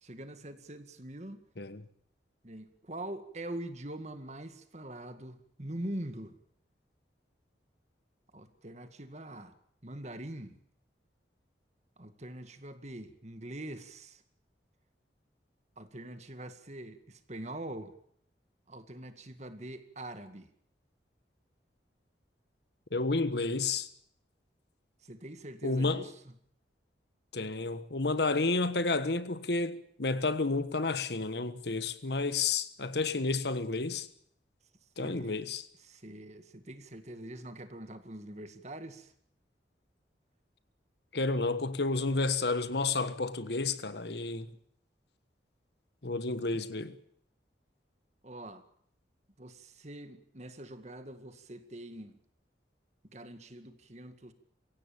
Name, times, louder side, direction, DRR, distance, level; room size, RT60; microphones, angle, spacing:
voice 1, 0.0-1.4 2.4-6.3 8.3-9.5 9.8-10.6 12.0-14.2 15.8-17.9 18.7-20.5 25.0-26.3 35.0-35.3 35.8-39.1 46.5-46.6 48.2-48.6 49.4-52.2 53.1-54.3, right 1 dB, 40° right, 2.0 m, -43 dB
voice 2, 22.9-23.9 25.6-26.0 27.3-34.1 35.0-35.6 41.1-44.5 46.0-46.9, left 3 dB, 70° left, 1.3 m, -31 dB
24.5 x 16.5 x 8.7 m
head